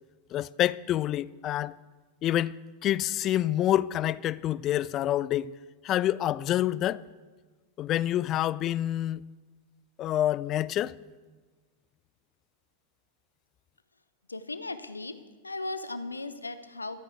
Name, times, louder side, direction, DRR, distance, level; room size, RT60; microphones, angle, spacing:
voice 1, 0.3-1.7 2.2-2.6 2.8-5.5 5.8-7.0 7.8-9.2 10.0-10.9, left 12 dB, 35° left, 0.4 m, -27 dB
voice 2, 14.3-17.0, left 2 dB, 80° left, 0.7 m, -37 dB
13.5 x 9.2 x 8.1 m
figure-of-eight pair, 90°, 0 cm